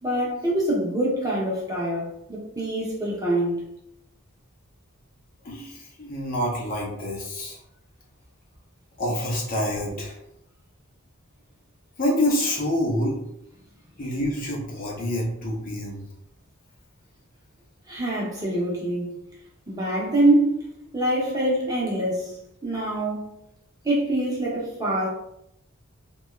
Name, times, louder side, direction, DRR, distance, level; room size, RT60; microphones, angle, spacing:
voice 1, 0.0-3.7 17.9-19.1 19.7-20.6 20.9-22.3 22.6-23.3 23.8-25.1, right 1 dB, 15° right, 0.7 m, -24 dB
voice 2, 5.4-7.6 9.0-10.2 12.0-13.2 14.0-16.0, left 1 dB, 40° left, 0.7 m, -27 dB
2.8 x 2.3 x 3.1 m
head